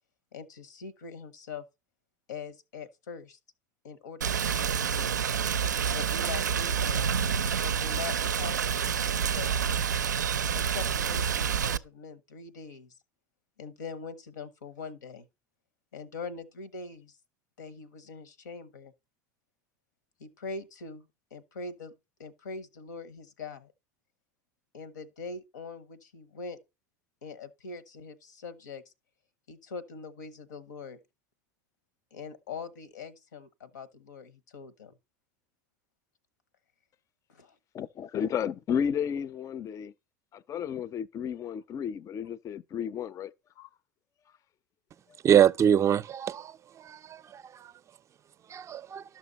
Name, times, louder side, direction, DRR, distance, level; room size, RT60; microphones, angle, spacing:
voice 1, 0.3-1.6 2.3-3.4 3.8-5.2 5.9-7.1 7.6-9.9 10.5-12.9 13.6-15.3 15.9-17.2 17.6-18.9 20.2-21.9 22.2-23.7 24.7-26.6 27.2-28.9 29.5-31.0 32.1-34.9 37.3-37.6, left 4 dB, 80° left, 1.2 m, -42 dB
Rain, 4.2-11.8, right 7 dB, 90° right, 0.4 m, -28 dB
voice 2, 37.7-39.9 40.3-43.3 43.6-43.7 45.1-45.2, left 8 dB, 35° left, 0.5 m, -33 dB
voice 3, 45.2-46.5 46.9-47.2 48.5-49.0, right 9 dB, 30° right, 0.5 m, -23 dB
12.5 x 6.3 x 4.1 m
hypercardioid pair, 80°, 9 cm